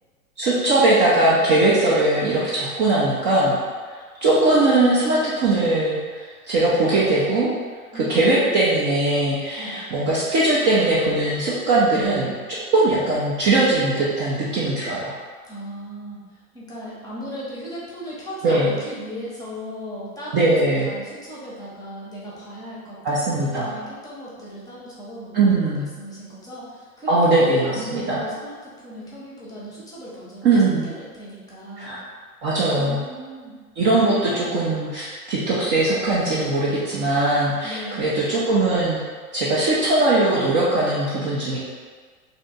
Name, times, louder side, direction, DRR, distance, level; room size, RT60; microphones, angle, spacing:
voice 1, 0.4-3.6 4.2-7.5 7.9-12.3 12.7-15.1 18.4-18.7 20.3-20.9 23.0-23.7 25.3-25.8 27.1-28.2 30.4-30.9 31.8-32.0 32.4-33.0 33.8-39.0 39.3-41.6, right 2 dB, 25° right, -7 dB, 0.6 m, -20 dB
voice 2, 7.9-8.5 9.6-9.8 15.4-16.2 16.5-30.4 30.8-31.9 32.7-33.5 37.6-38.2, equal, 10° left, -7 dB, 0.8 m, -37 dB
3.4 x 2.7 x 3.9 m, 1.5 s
figure-of-eight pair, 90°, 45 cm